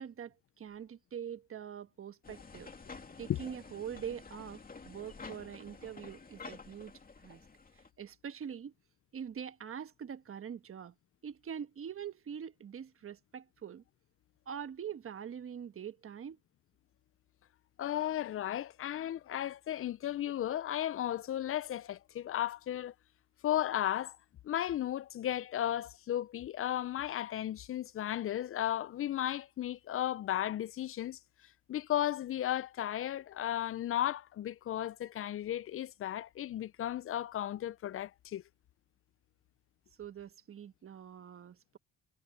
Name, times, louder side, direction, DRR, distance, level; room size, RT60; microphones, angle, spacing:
voice 1, 0.0-2.7 3.2-6.9 7.2-7.4 8.0-8.7 9.1-10.9 11.2-13.8 14.5-16.4 40.0-41.8, right 8 dB, 45° right, 1.3 m, -44 dB
sound 1, 2.2-7.9, left 4 dB, 30° left, 2.4 m, -50 dB
voice 2, 17.8-22.9 23.4-24.2 24.4-31.2 31.7-38.4, left 12 dB, 45° left, 0.4 m, -35 dB
cardioid pair, 90°, 30 cm